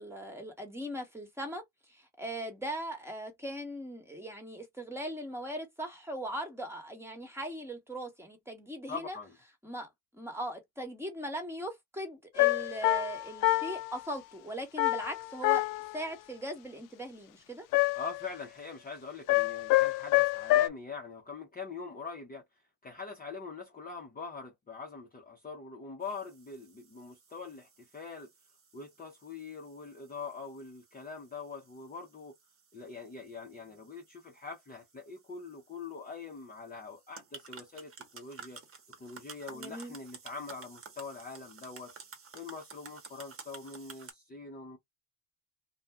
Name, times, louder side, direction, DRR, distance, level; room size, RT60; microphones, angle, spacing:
voice 1, 0.0-1.6 1.9-9.2 9.6-9.9 10.1-15.7 15.9-17.7 39.5-40.0, right 1 dB, 5° right, 1.4 m, -39 dB
voice 2, 8.9-9.4 17.9-22.4 22.8-28.3 28.7-32.3 32.7-38.6 38.9-41.9 42.3-44.8, left 4 dB, 20° left, 0.9 m, -43 dB
sound 1, 12.4-14.0 14.8-16.0 17.7-18.3 19.3-20.7, left 18 dB, 50° left, 0.5 m, -27 dB
sound 2, 26.0-44.1, right 5 dB, 30° right, 1.1 m, -53 dB
2.5 x 2.3 x 3.4 m
supercardioid pair, 90°, 44 cm